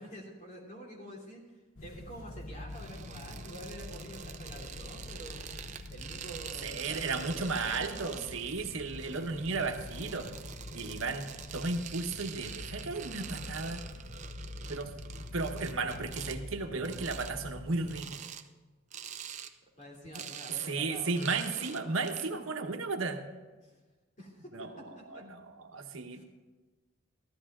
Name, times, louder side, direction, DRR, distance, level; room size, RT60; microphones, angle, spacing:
voice 1, 0.0-1.4 1.8-5.4 5.9-8.2 19.8-22.2 23.6-23.7 24.2-25.2 26.1-26.2, equal, 35° left, -2 dB, 3.1 m, -48 dB
sound 1, 1.8-18.0, left 1 dB, 85° left, 1.1 m, -45 dB
sound 2, 2.7-16.4 16.8-17.3 17.8-18.5 18.9-19.5 19.8-22.3, right 8 dB, 35° right, 0.6 m, -46 dB
voice 2, 6.6-10.3 10.7-11.3 11.5-13.8 14.7-14.9 15.3-18.2 20.0-20.2 20.7-23.2 24.5-24.7 25.1-26.2, right 3 dB, 80° right, 5 dB, 1.2 m, -34 dB
14.5 x 12.5 x 3.7 m, 1.3 s
head